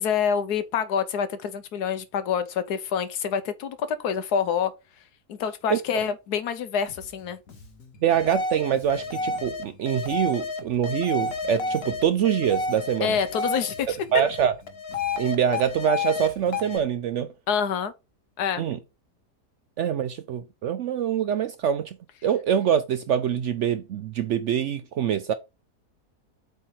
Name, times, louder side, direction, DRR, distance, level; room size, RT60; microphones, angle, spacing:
voice 1, 0.0-4.7 5.3-7.4 13.0-14.0 17.5-17.9 18.4-18.6, left 7 dB, 85° left, 1.3 m, -27 dB
Bass guitar, 6.9-16.8, left 3 dB, 65° left, 1.9 m, -49 dB
voice 2, 8.0-13.2 14.1-14.5 15.2-17.3 18.6-18.8 19.8-22.0 22.2-25.3, right 9 dB, 70° right, 0.7 m, -24 dB
sound 1, 8.1-13.8 14.2-16.3 16.5-16.8, left 3 dB, 45° left, 1.1 m, -30 dB
8.0 x 3.4 x 4.4 m
omnidirectional pair, 1.7 m